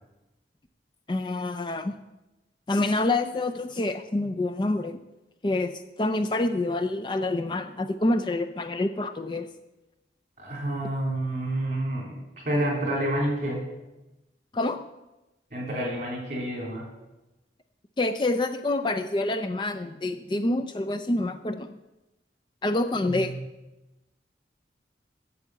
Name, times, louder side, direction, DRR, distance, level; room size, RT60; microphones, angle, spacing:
voice 1, 1.1-1.9 2.7-5.0 5.4-9.5 14.5-14.8 18.0-21.7 22.6-23.3, left 2 dB, 25° left, 8 dB, 0.4 m, -27 dB
voice 2, 10.4-13.6 15.5-16.8, right 1 dB, 40° right, 0 dB, 3.5 m, -29 dB
8.2 x 7.2 x 8.0 m, 1.0 s
head